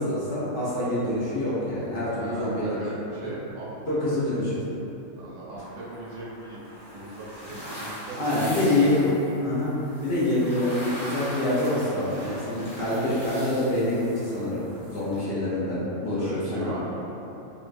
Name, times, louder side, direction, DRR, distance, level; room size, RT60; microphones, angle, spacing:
voice 1, 0.0-2.8 3.9-4.5 8.2-9.1 9.4-9.7 10.0-16.7, left 1 dB, 55° left, -10 dB, 0.9 m, -26 dB
voice 2, 2.1-4.4 5.2-6.6 6.9-9.1 16.2-17.0, right 2 dB, 70° right, -7 dB, 1.0 m, -39 dB
sound 1, 5.6-15.2, equal, 25° left, 0.7 m, -41 dB
3.8 x 2.2 x 2.5 m, 3.0 s
omnidirectional pair, 1.4 m